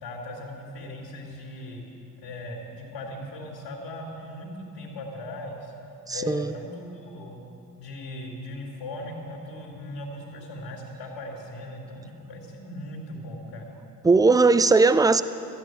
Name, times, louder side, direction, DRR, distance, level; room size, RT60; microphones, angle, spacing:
voice 1, 0.0-1.9 2.2-5.7 6.1-7.4 7.8-13.7, left 1 dB, 55° left, -2 dB, 3.0 m, -38 dB
voice 2, 6.1-6.5 14.0-15.2, right 3 dB, 10° right, 13 dB, 0.4 m, -18 dB
13.5 x 8.9 x 9.2 m, 2.8 s
figure-of-eight pair, 50°, 47 cm